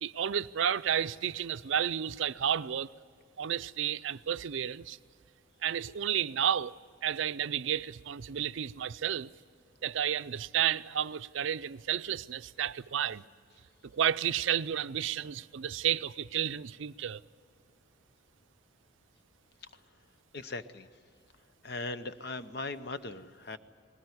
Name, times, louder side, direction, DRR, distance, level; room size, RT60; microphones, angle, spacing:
voice 1, 0.0-2.9 3.4-5.0 5.6-9.3 9.8-13.2 13.9-17.2, right 9 dB, 70° right, 0.5 m, -31 dB
voice 2, 20.3-20.9 21.6-23.6, left 3 dB, 55° left, 0.8 m, -39 dB
20.0 x 17.5 x 9.6 m
head